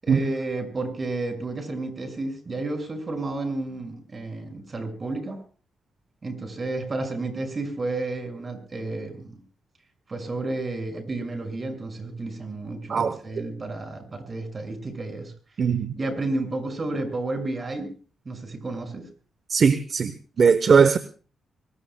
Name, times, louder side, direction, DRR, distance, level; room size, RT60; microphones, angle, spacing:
voice 1, 0.0-5.4 6.2-9.4 10.1-15.3 16.0-17.9 18.2-19.1, right 2 dB, 40° right, 6.3 m, -31 dB
voice 2, 15.6-15.9 19.5-20.1 20.4-21.0, right 6 dB, 55° right, 1.0 m, -19 dB
24.5 x 20.5 x 2.3 m
cardioid pair, 70°, 0 cm